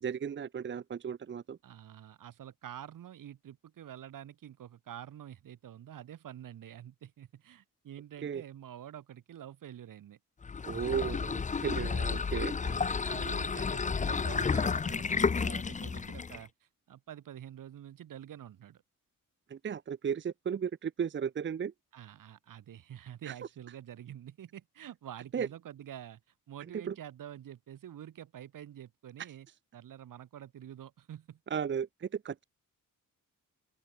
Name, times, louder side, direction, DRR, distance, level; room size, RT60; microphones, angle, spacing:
voice 1, 0.0-1.6 8.2-8.4 10.7-12.5 19.5-21.7 23.3-23.4 25.3-25.5 26.7-26.9 31.5-32.4, right 7 dB, 35° right, 0.8 m, -35 dB
voice 2, 1.6-10.2 12.6-16.5 16.9-18.8 21.9-26.2 26.5-29.5 29.7-31.4, right 10 dB, 75° right, 5.1 m, -47 dB
sound 1, 10.4-16.5, left 5 dB, 25° left, 0.7 m, -31 dB
open air
wide cardioid pair, 145°, 33 cm